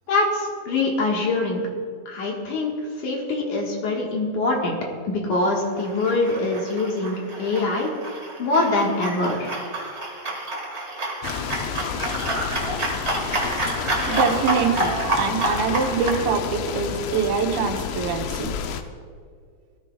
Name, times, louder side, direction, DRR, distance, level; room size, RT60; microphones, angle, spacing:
voice 1, 0.1-1.6 2.1-2.8 3.0-4.8 5.0-7.9 8.4-9.5, left 2 dB, 60° left, -1 dB, 2.7 m, -24 dB
sound 1, 5.7-16.2, right 2 dB, 45° right, 0.8 m, -28 dB
sound 2, 11.2-18.8, left 7 dB, 75° left, 2.2 m, -30 dB
voice 2, 14.0-18.5, right 5 dB, 75° right, 2 dB, 2.8 m, -24 dB
20.0 x 13.5 x 2.4 m, 2.1 s
omnidirectional pair, 4.4 m